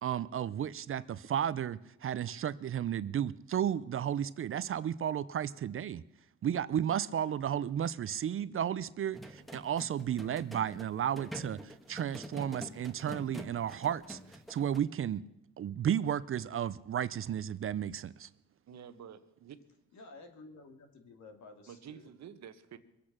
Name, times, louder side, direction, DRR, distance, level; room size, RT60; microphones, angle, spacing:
voice 1, 0.0-6.0 6.4-14.2 14.5-15.2 15.6-18.3, right 9 dB, 45° right, 0.5 m, -33 dB
sound 1, 9.1-14.8, equal, ahead, 1.4 m, -46 dB
voice 2, 18.7-19.6 21.7-22.8, right 8 dB, 60° right, 1.1 m, -49 dB
voice 3, 19.9-22.1, left 3 dB, 70° left, 2.5 m, -53 dB
23.0 x 8.5 x 6.1 m
cardioid pair, 90°, 30 cm